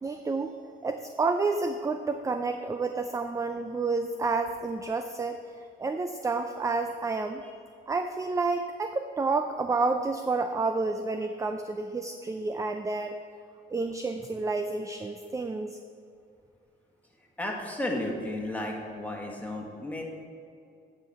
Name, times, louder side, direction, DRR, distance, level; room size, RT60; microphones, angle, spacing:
voice 1, 0.0-5.4 5.8-7.4 7.9-13.2 13.7-15.8, right 3 dB, 15° right, 7 dB, 0.4 m, -30 dB
voice 2, 17.4-20.0, left 1 dB, 5° left, -1 dB, 1.6 m, -33 dB
9.4 x 5.8 x 4.7 m, 2.4 s
cardioid pair, 90°, 20 cm